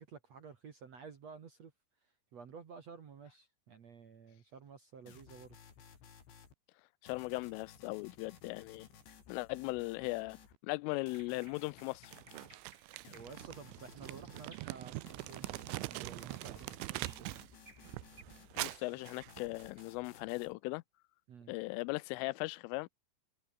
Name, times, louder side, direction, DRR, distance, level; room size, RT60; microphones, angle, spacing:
voice 1, 0.0-1.7 2.3-5.6 13.1-17.3 21.3-21.5, right 6 dB, 50° right, 2.2 m, -52 dB
sound 1, 5.1-6.5 7.1-10.6 11.1-12.5 13.0-14.5 15.1-18.6 19.1-20.5, left 7 dB, 65° left, 6.8 m, -58 dB
voice 2, 7.0-8.9 9.3-10.4 10.6-12.1 18.6-20.8 21.5-22.9, left 25 dB, 90° left, 3.1 m, -38 dB
sound 2, 11.0-15.5 15.9-16.6 16.9-18.2, right 3 dB, 20° right, 3.9 m, -63 dB
Crumpling crinkling, 12.1-17.5 17.8-19.8, right 21 dB, 85° right, 3.0 m, -43 dB
omnidirectional pair, 5.6 m